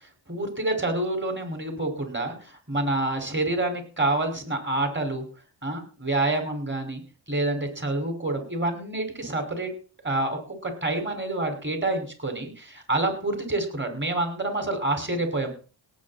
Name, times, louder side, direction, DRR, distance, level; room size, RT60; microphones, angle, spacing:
voice 1, 0.3-5.2 5.6-7.0 7.3-9.7 10.0-15.5, right 2 dB, 25° right, 5 dB, 5.6 m, -27 dB
18.5 x 8.6 x 4.4 m, 0.37 s
cardioid pair, 65°, 46 cm